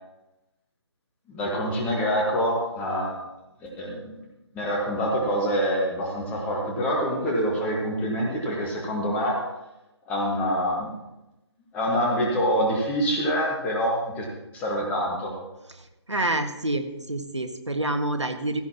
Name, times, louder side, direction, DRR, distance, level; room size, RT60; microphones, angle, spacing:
voice 1, 1.3-3.2 3.6-4.2 4.5-9.4 10.1-11.0 11.7-14.3 14.5-15.3, equal, 10° left, -1 dB, 1.6 m, -26 dB
voice 2, 16.1-18.6, right 1 dB, 80° right, 6 dB, 1.6 m, -27 dB
16.0 x 12.5 x 2.9 m, 0.97 s
figure-of-eight pair, 150°, 15 cm